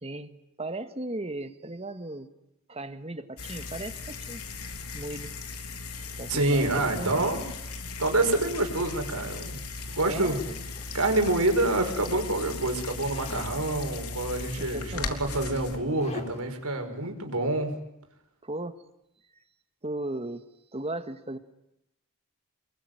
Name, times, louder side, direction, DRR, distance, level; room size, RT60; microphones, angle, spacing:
voice 1, 0.0-2.3 2.7-4.4 4.9-5.3 5.9-7.4 10.0-10.6 12.7-12.9 14.6-15.2 18.4-18.8 19.8-20.4 20.7-21.4, right 2 dB, 30° right, 10 dB, 1.7 m, -37 dB
sound 1, 3.4-15.8, left 3 dB, 90° left, 3.4 m, -38 dB
voice 2, 6.3-7.4 8.0-9.6 9.9-10.4 10.9-17.7, right 2 dB, 85° right, 5 dB, 5.6 m, -27 dB
Zipper (clothing), 10.1-11.8 13.1-13.6 14.7-14.8 15.1-16.6, left 1 dB, 30° left, 3.6 m, -45 dB
28.5 x 22.5 x 9.4 m, 0.86 s
head